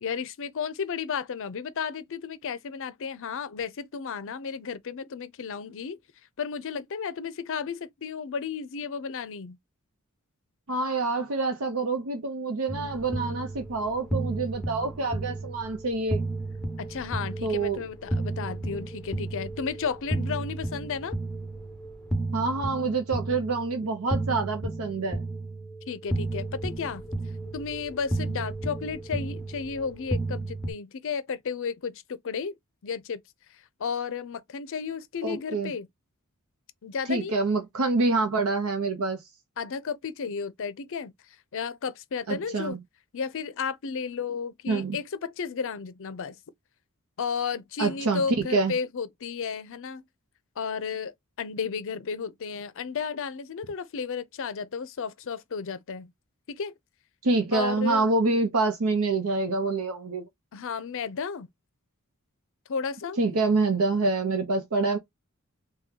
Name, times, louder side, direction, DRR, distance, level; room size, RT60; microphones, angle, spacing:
voice 1, 0.0-6.0 6.4-9.6 16.8-21.2 25.9-27.0 27.5-32.5 32.8-33.2 33.8-35.9 36.8-37.4 39.6-41.1 41.5-42.8 43.1-46.4 47.2-50.0 50.6-56.1 56.5-56.7 57.5-58.1 60.5-61.5 62.7-63.2, left 6 dB, 60° left, 0.5 m, -33 dB
voice 2, 10.7-16.2 17.4-17.8 22.3-25.2 35.2-35.7 37.1-39.2 42.3-42.8 44.7-45.0 47.8-48.2 48.5-48.7 57.2-60.3 63.2-65.0, right 3 dB, 70° right, 0.7 m, -26 dB
sound 1, 12.7-30.7, right 2 dB, 5° left, 0.7 m, -33 dB
3.7 x 2.3 x 2.8 m
head